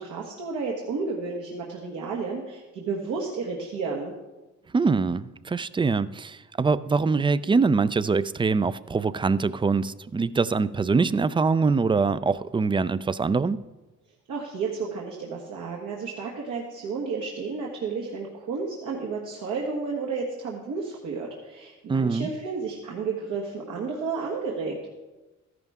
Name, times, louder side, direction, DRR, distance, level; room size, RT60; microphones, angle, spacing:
voice 1, 0.0-4.1 14.3-24.9, right 4 dB, 80° right, -2 dB, 1.6 m, -32 dB
voice 2, 4.7-13.6 21.9-22.3, right 4 dB, 15° right, 16 dB, 0.3 m, -24 dB
13.5 x 11.0 x 3.6 m, 1.1 s
cardioid pair, 90°, 30 cm